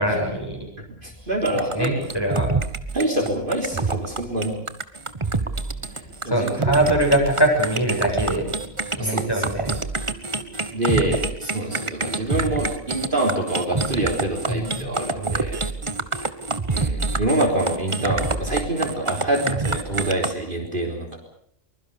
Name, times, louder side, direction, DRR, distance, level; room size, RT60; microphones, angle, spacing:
voice 1, 0.0-0.6 1.7-2.5 5.8-5.9 6.3-8.5 9.0-9.8 14.5-14.9, right 1 dB, 15° left, 0 dB, 7.8 m, -22 dB
voice 2, 0.8-2.1 2.9-4.6 6.2-6.8 9.0-9.4 10.7-15.6 16.7-21.2, right 1 dB, 40° right, 2 dB, 3.9 m, -26 dB
sound 1, 1.5-20.3, right 3 dB, 25° right, 1.2 m, -27 dB
24.0 x 21.5 x 6.9 m, 0.68 s
omnidirectional pair, 1.4 m